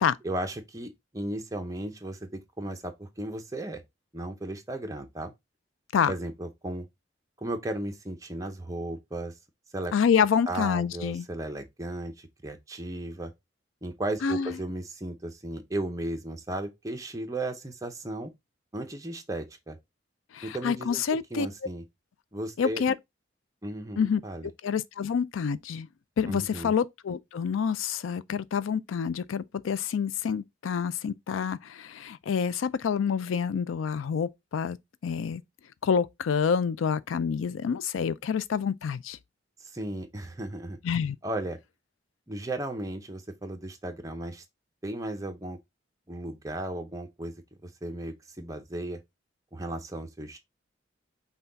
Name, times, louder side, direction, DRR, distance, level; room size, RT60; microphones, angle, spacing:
voice 1, 0.2-3.8 4.1-5.3 6.1-6.9 7.4-9.3 9.7-9.9 10.5-13.3 13.8-18.3 18.7-19.8 20.4-21.0 21.3-21.8 22.3-22.8 23.6-24.5 26.3-26.7 39.6-40.8 41.2-41.6 42.3-44.4 44.8-45.6 46.1-47.3 47.6-49.0 49.5-50.4, right 1 dB, 15° right, 0.7 m, -35 dB
voice 2, 9.9-11.2 14.2-14.6 20.3-21.5 22.6-22.9 24.0-24.2 24.6-25.9 26.2-34.8 35.0-35.4 35.8-39.2 40.8-41.2, left 6 dB, 90° left, 0.4 m, -27 dB
5.6 x 2.3 x 3.9 m
head